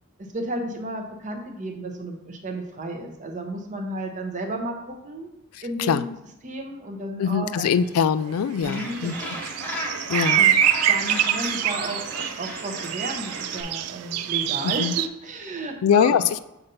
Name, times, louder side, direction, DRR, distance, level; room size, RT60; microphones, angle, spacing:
voice 1, 0.2-5.3 5.6-6.1 6.4-7.7 8.6-9.4 10.3-10.6 10.9-16.3, right 1 dB, 35° right, 3 dB, 0.8 m, -33 dB
voice 2, 7.2-9.3 10.1-10.4 14.8-14.9 15.8-16.4, left 7 dB, 70° left, 16 dB, 0.3 m, -22 dB
sound 1, 8.5-15.1, right 10 dB, 80° right, 0.3 m, -25 dB
Gull seagull, 8.6-13.6, equal, 10° left, 0.9 m, -34 dB
6.9 x 2.7 x 5.4 m, 0.89 s
head